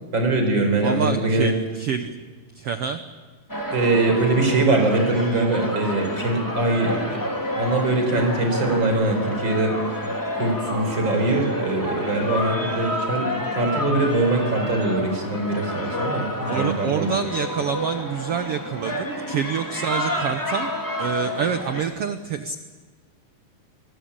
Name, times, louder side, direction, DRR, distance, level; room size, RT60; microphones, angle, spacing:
voice 1, 0.1-1.5 3.7-7.2 7.6-9.7 10.4-17.1, right 2 dB, 30° right, 4 dB, 5.0 m, -22 dB
voice 2, 0.8-2.1 2.5-3.0 16.5-20.7 21.0-22.5, right 7 dB, 85° right, 9 dB, 1.3 m, -27 dB
sound 1, 3.5-21.8, equal, 5° left, 2.5 m, -29 dB
26.0 x 19.0 x 8.7 m, 1.4 s
omnidirectional pair, 4.0 m